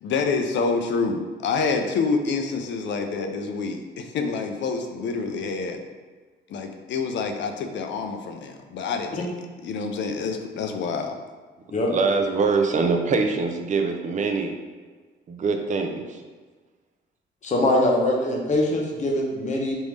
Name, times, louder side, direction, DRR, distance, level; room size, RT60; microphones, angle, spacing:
voice 1, 0.0-5.8 6.5-9.3 9.6-11.1, left 4 dB, 65° left, 5 dB, 0.4 m, -27 dB
voice 2, 11.9-14.5 15.3-16.2, right 4 dB, 40° right, 5 dB, 0.4 m, -23 dB
voice 3, 17.4-19.8, left 1 dB, 35° left, -1 dB, 0.8 m, -22 dB
3.4 x 2.6 x 3.2 m, 1.4 s
cardioid pair, 90°, 20 cm